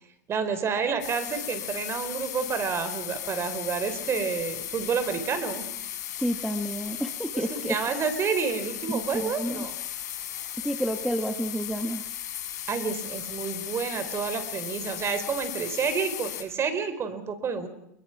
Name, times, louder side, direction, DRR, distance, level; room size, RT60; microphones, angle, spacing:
voice 1, 0.3-5.7 7.3-9.7 12.7-17.7, right 6 dB, 30° right, 10 dB, 4.4 m, -29 dB
sound 1, 1.0-16.4, left 11 dB, 80° left, 4.6 m, -36 dB
voice 2, 6.2-7.8 8.9-9.7 10.6-12.0, equal, ahead, 6 dB, 1.6 m, -30 dB
28.5 x 21.5 x 6.1 m, 0.80 s
hypercardioid pair, 115°, 9 cm